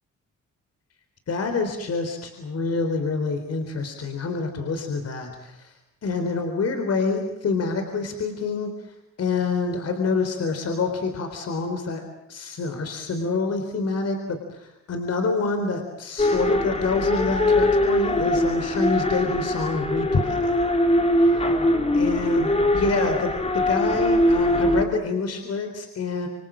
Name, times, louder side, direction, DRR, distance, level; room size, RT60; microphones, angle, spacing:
voice 1, 1.3-5.7 6.0-8.7 9.2-12.0 12.3-20.4 21.2-21.5 21.9-26.3, left 4 dB, 55° left, 6 dB, 4.0 m, -27 dB
sound 1, 16.2-24.8, left 1 dB, 20° left, 2.7 m, -22 dB
28.0 x 25.0 x 7.5 m, 0.86 s
cardioid pair, 90°, 30 cm